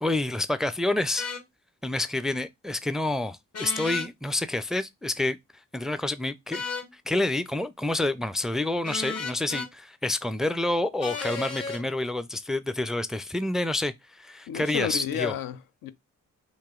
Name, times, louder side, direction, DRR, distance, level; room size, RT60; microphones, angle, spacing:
voice 1, 0.0-1.3 1.8-5.4 5.7-6.6 6.9-15.3, left 2 dB, ahead, 0.4 m, -28 dB
sound 1, 1.2-1.4 3.5-4.1 6.5-6.9 8.8-9.7 11.0-11.8, left 4 dB, 45° left, 1.0 m, -33 dB
voice 2, 14.5-15.9, left 9 dB, 70° left, 0.5 m, -31 dB
3.0 x 2.6 x 3.7 m
supercardioid pair, 50°, 35 cm